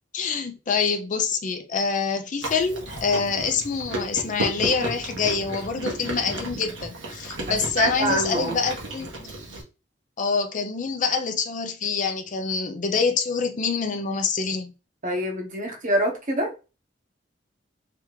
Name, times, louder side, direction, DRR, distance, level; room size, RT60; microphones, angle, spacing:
voice 1, 0.1-9.3 10.2-14.7, left 5 dB, 45° left, 0.6 m, -26 dB
Chewing mastication, 2.4-9.6, right 1 dB, 80° right, 1.3 m, -33 dB
voice 2, 7.5-8.6 15.0-16.5, equal, 45° right, 1.1 m, -25 dB
3.6 x 3.4 x 3.1 m
head